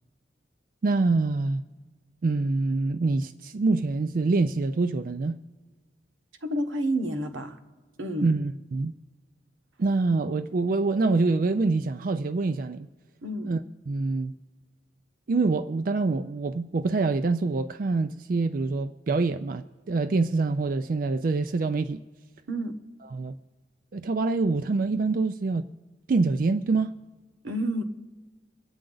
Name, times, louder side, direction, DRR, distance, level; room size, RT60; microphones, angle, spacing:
voice 1, 0.8-1.6 2.2-5.4 8.2-8.9 9.8-12.9 13.5-13.6 13.9-14.3 15.3-22.0 23.1-23.4 23.9-25.7 26.1-27.0, right 3 dB, 45° right, 0.4 m, -25 dB
voice 2, 6.4-7.6 8.0-8.3 13.2-13.5 22.5-22.8 27.4-27.8, right 1 dB, 90° right, 1.1 m, -29 dB
25.0 x 8.8 x 3.9 m
head